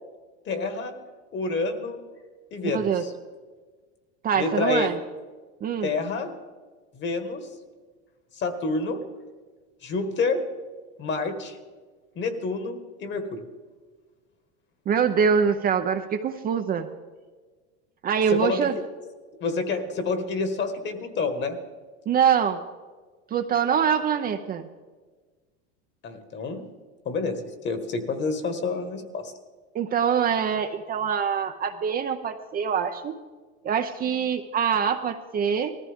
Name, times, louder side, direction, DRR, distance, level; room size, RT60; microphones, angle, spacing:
voice 1, 0.4-0.9 1.3-2.0 2.5-3.1 4.3-4.9 5.8-6.3 6.9-7.5 8.3-9.0 9.8-10.4 11.0-11.6 12.1-13.4 18.3-18.8 19.4-21.6 26.0-26.7 27.0-29.3, left 3 dB, 35° left, 8 dB, 1.6 m, -28 dB
voice 2, 2.6-3.0 4.2-5.0 5.6-5.9 14.9-16.9 18.0-18.7 22.1-22.6 23.3-24.7 29.7-33.2 33.6-35.8, right 7 dB, 25° right, 6 dB, 0.6 m, -24 dB
18.5 x 14.5 x 3.6 m, 1.4 s
supercardioid pair, 125°, 33 cm